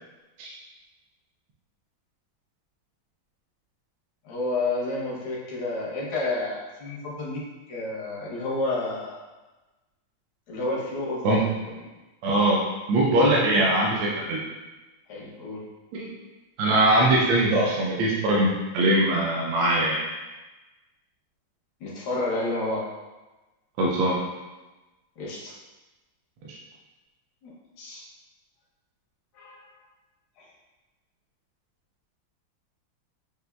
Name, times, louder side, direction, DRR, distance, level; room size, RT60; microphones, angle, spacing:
voice 1, 4.3-7.4 7.7-9.2 10.5-11.5 11.8-12.0 15.1-15.6 21.8-22.9 25.2-25.5 27.4-28.0 29.4-29.7 30.4-30.5, left 2 dB, 85° left, -4 dB, 1.8 m, -30 dB
voice 2, 12.2-12.6 12.9-14.4 15.9-16.1 16.6-20.0 23.8-24.2, right 1 dB, 75° right, -4 dB, 1.3 m, -21 dB
6.7 x 2.5 x 2.2 m, 1.1 s
omnidirectional pair, 2.3 m